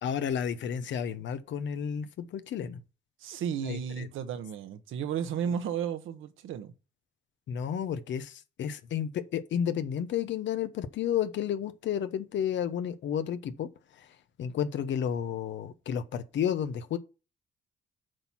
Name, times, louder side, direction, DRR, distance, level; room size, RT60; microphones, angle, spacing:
voice 1, 0.0-2.8 3.6-4.1 7.5-17.0, left 8 dB, 70° left, 1.0 m, -32 dB
voice 2, 3.2-6.7, right 8 dB, 85° right, 1.2 m, -33 dB
7.8 x 4.5 x 5.7 m
cardioid pair, 90°, 20 cm